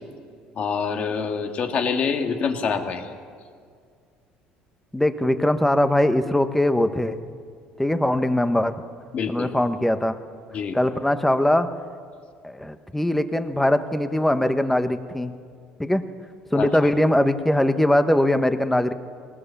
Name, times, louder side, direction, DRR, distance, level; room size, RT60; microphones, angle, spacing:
voice 1, 0.6-3.0 9.1-9.5 10.5-10.8 16.5-16.9, left 6 dB, 50° left, 4 dB, 2.1 m, -26 dB
voice 2, 4.9-7.2 7.8-8.8 9.3-10.2 10.7-11.7 12.4-15.3 15.8-16.0 16.5-18.9, left 1 dB, 5° left, 9 dB, 1.1 m, -21 dB
20.5 x 19.0 x 7.1 m, 2.1 s
cardioid pair, 110°, 3 cm